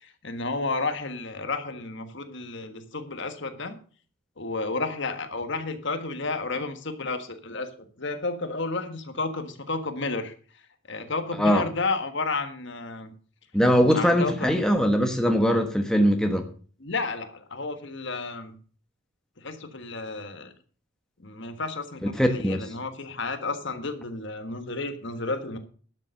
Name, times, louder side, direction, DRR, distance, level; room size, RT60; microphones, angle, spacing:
voice 1, 0.0-3.8 4.4-7.7 8.0-10.3 10.9-13.1 13.9-14.6 16.8-18.6 19.4-20.5 21.2-25.6, left 3 dB, 55° left, 8 dB, 1.5 m, -32 dB
voice 2, 13.5-16.5 22.1-22.7, equal, 5° left, 4 dB, 1.3 m, -21 dB
12.0 x 7.0 x 6.4 m, 0.41 s
head